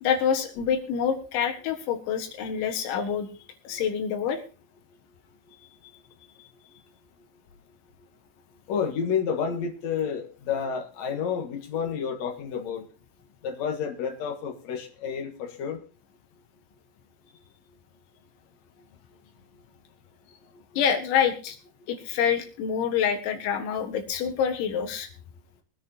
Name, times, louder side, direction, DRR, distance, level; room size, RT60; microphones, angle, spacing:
voice 1, 0.0-3.3 3.7-4.4 20.8-21.6 21.9-25.1, left 8 dB, 80° left, 6 dB, 3.9 m, -26 dB
voice 2, 8.7-12.8 13.4-15.8, left 7 dB, 55° left, 3 dB, 2.0 m, -30 dB
22.0 x 10.5 x 2.8 m, 0.35 s
omnidirectional pair, 5.3 m